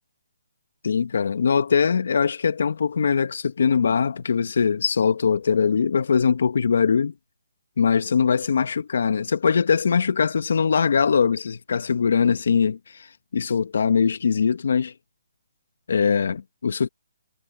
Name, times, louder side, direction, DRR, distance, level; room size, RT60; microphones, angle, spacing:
voice 1, 0.8-7.1 7.8-13.1 13.3-14.9 15.9-16.9, left 6 dB, 65° left, 1.8 m, -21 dB
hypercardioid pair, 155°, 0 cm